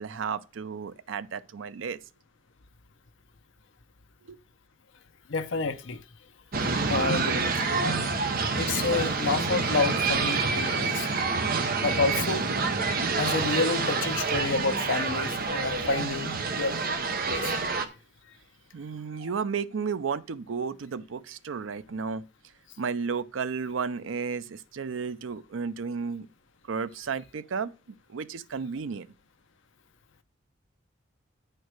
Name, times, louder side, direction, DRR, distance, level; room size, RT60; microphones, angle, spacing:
voice 1, 0.0-2.0 4.3-4.4 6.6-6.7 18.7-22.2 22.8-26.3 26.7-27.7 28.1-29.1, right 5 dB, 85° right, 0.5 m, -33 dB
voice 2, 5.3-6.0 6.9-7.4 8.6-11.1 11.8-12.5 13.2-16.8 17.3-17.5, left 4 dB, 75° left, 0.7 m, -29 dB
sound 1, 6.5-17.9, right 4 dB, 50° right, 0.9 m, -27 dB
9.1 x 4.6 x 4.7 m
head